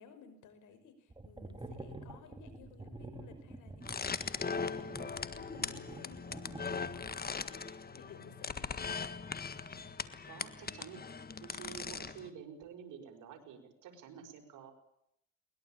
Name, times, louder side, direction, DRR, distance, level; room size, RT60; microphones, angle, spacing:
voice 1, 0.0-9.0, left 5 dB, 85° left, 8 dB, 5.5 m, -56 dB
sound 1, 1.1-7.2, right 2 dB, 15° right, 4.0 m, -48 dB
sound 2, 3.8-12.3, left 5 dB, 30° left, 1.6 m, -40 dB
voice 2, 10.2-11.1 11.4-14.7, right 7 dB, 85° right, 4 dB, 5.4 m, -50 dB
22.0 x 21.0 x 8.9 m, 0.77 s
cardioid pair, 90°, 30 cm